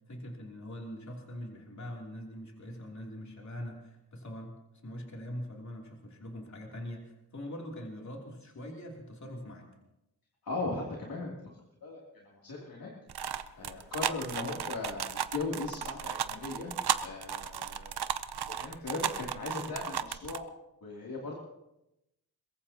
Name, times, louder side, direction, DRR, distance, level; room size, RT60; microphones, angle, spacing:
voice 1, 0.1-4.5 4.8-9.7, equal, 45° left, -1 dB, 3.1 m, -43 dB
voice 2, 10.4-11.3 11.8-12.9 13.5-16.7 17.0-17.9 18.5-20.5 20.8-21.4, left 3 dB, 65° left, -3 dB, 2.9 m, -38 dB
sound 1, 13.1-20.4, right 9 dB, 80° right, 0.7 m, -34 dB
22.0 x 22.0 x 2.9 m, 0.90 s
wide cardioid pair, 145°, 38 cm